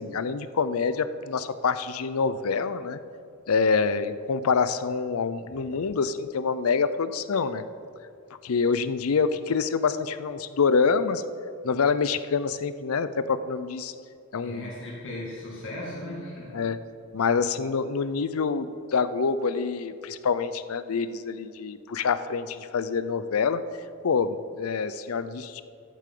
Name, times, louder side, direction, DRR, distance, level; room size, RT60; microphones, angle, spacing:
voice 1, 0.0-3.0 3.5-7.7 8.4-11.2 11.6-13.9 14.3-14.7 16.5-16.8 17.1-23.6 24.0-25.6, left 5 dB, 80° left, 13 dB, 0.5 m, -26 dB
voice 2, 14.4-16.6, left 1 dB, 60° left, -4 dB, 2.2 m, -37 dB
14.5 x 8.3 x 3.8 m, 2.4 s
head